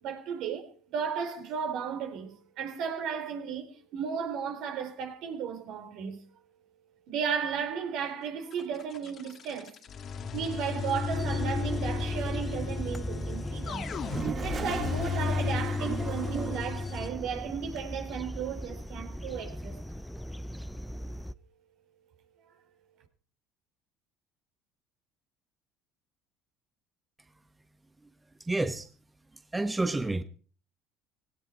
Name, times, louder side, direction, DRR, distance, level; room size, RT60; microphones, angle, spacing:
voice 1, 0.0-6.2 7.1-9.7 10.3-13.9 14.4-19.8, right 7 dB, 65° right, 4.1 m, -34 dB
sound 1, 8.5-17.1, left 4 dB, 50° left, 2.1 m, -34 dB
sound 2, 11.1-21.3, equal, 5° left, 0.7 m, -39 dB
Toilet flush, 13.8-16.9, right 6 dB, 40° right, 2.0 m, -37 dB
voice 2, 28.5-28.9 29.5-30.2, right 2 dB, 15° right, 1.2 m, -29 dB
18.0 x 17.0 x 4.3 m
hypercardioid pair, 70°, 0 cm